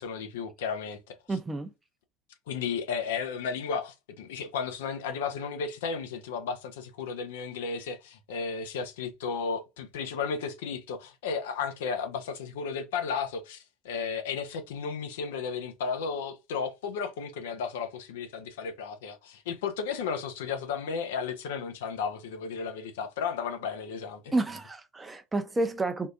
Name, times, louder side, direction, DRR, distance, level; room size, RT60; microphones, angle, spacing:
voice 1, 0.0-1.4 2.5-24.3, left 6 dB, 70° left, 0.5 m, -34 dB
voice 2, 1.3-1.7 24.3-26.1, right 2 dB, 15° right, 0.6 m, -30 dB
3.6 x 2.5 x 2.5 m
hypercardioid pair, 70°, 0 cm